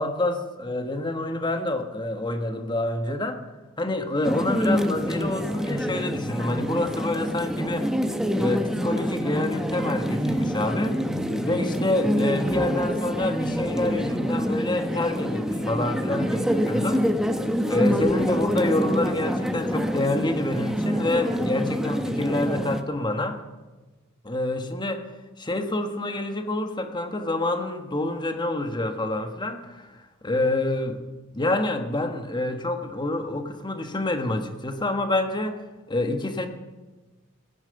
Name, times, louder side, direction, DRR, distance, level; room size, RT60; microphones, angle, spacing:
voice 1, 0.0-3.4 3.8-7.9 8.4-11.0 11.4-17.0 17.7-23.4 24.2-25.1 25.4-29.9 30.2-31.0 31.3-35.6 35.9-36.5, left 2 dB, 20° left, 7 dB, 1.4 m, -27 dB
sound 1, 4.2-22.8, equal, 5° right, 0.9 m, -26 dB
16.5 x 10.5 x 7.9 m, 1.2 s
head